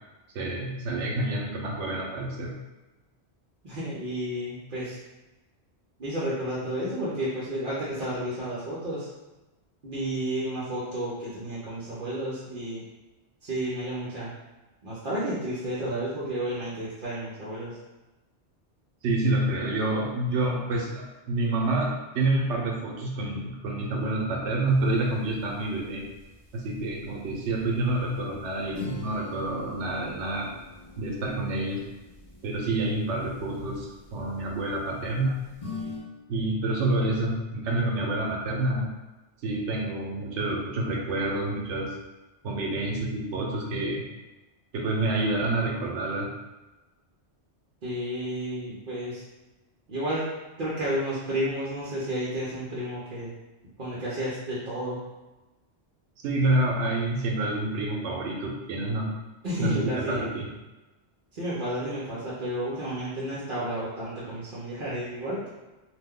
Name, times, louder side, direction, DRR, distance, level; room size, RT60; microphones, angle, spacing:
voice 1, 0.3-2.6 19.0-26.0 26.5-30.5 31.0-31.8 32.4-35.4 36.3-38.9 39.4-42.0 42.4-44.1 44.7-46.3 56.2-59.2 59.6-60.5, right 2 dB, 90° right, 0 dB, 1.0 m, -28 dB
voice 2, 3.6-5.0 6.0-9.1 9.8-12.8 13.4-14.3 14.8-17.8 47.8-49.2 49.9-50.3 50.6-53.3 53.8-55.0 59.4-60.3 61.3-65.5, right 1 dB, 50° right, -8 dB, 0.8 m, -31 dB
sound 1, 24.7-36.0, left 3 dB, 40° left, 0.8 m, -45 dB
2.7 x 2.1 x 3.6 m, 1.1 s
omnidirectional pair, 1.2 m